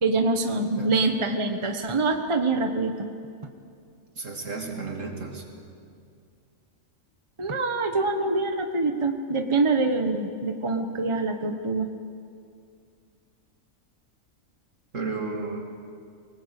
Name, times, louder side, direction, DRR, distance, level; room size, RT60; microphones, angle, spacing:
voice 1, 0.0-3.1 7.4-11.9, right 3 dB, 25° right, 5 dB, 1.1 m, -25 dB
voice 2, 4.1-5.5 14.9-15.6, right 3 dB, 65° right, 1 dB, 3.1 m, -33 dB
24.0 x 19.0 x 8.3 m, 2.4 s
omnidirectional pair, 1.4 m